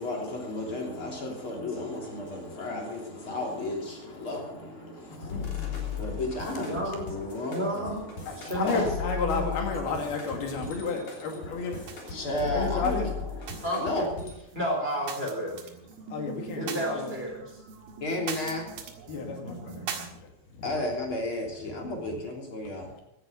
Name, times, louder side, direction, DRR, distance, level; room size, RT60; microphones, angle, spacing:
voice 1, 0.0-9.0 9.6-14.1 18.0-18.7 20.6-22.9, left 2 dB, 35° left, 0 dB, 3.6 m, -34 dB
voice 2, 5.1-5.9 8.3-11.8 12.5-13.1 16.1-17.1 19.1-19.9 20.1-20.7, left 4 dB, 75° left, 3 dB, 4.3 m, -32 dB
sound 1, 5.2-14.3, left 7 dB, 50° left, 4.4 m, -36 dB
voice 3, 6.7-7.1 7.5-8.0 8.4-9.5 13.6-14.1 14.5-15.5 16.6-17.4, right 1 dB, 15° right, 0 dB, 3.5 m, -31 dB
sound 2, 10.3-11.0 11.3-12.5 12.8-20.1, right 6 dB, 65° right, 3.3 m, -42 dB
16.0 x 11.5 x 5.3 m, 0.84 s
omnidirectional pair, 4.5 m